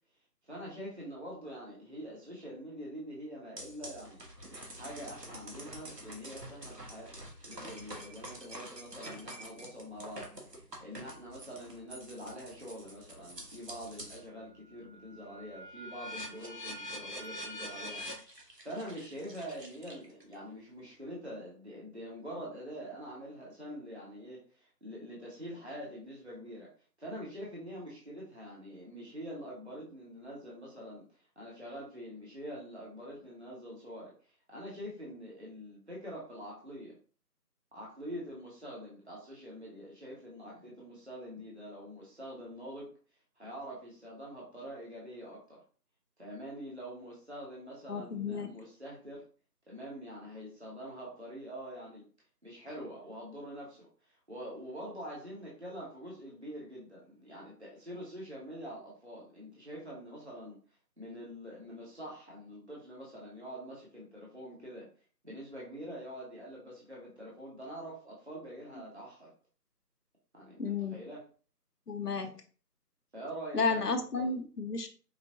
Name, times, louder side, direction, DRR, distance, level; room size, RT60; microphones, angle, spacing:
voice 1, 0.4-4.2 4.7-10.3 10.8-26.7 27.0-31.0 31.4-34.1 34.5-37.0 37.7-42.9 43.4-45.6 46.2-49.2 49.7-52.0 52.4-60.6 61.0-64.9 65.2-69.3 70.3-70.6 70.9-71.2 73.1-73.9 74.1-74.3, equal, 40° right, -5 dB, 1.1 m, -45 dB
sound 1, 3.6-14.3 14.7-20.3, equal, 75° right, 1.3 m, -46 dB
voice 2, 47.9-48.5 70.6-71.0 71.9-72.3 73.5-74.9, left 4 dB, 70° left, 6 dB, 0.7 m, -32 dB
5.0 x 2.3 x 2.7 m, 0.39 s
figure-of-eight pair, 175°, 49 cm